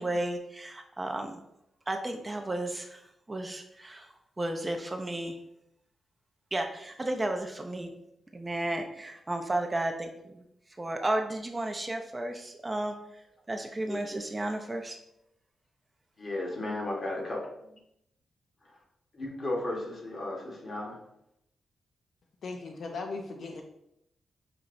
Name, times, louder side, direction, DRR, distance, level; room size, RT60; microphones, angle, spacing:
voice 1, 0.0-1.3 1.9-3.0 3.3-4.1 4.4-5.4 6.5-7.9 8.3-10.3 10.8-12.9 13.5-15.0, right 1 dB, 20° right, 4 dB, 0.4 m, -33 dB
voice 2, 16.2-17.8 19.1-20.9, left 2 dB, 40° left, -1 dB, 1.1 m, -34 dB
voice 3, 22.4-23.6, left 3 dB, 65° left, 3 dB, 0.4 m, -38 dB
5.2 x 2.9 x 2.5 m, 0.80 s
cardioid pair, 110°, 0 cm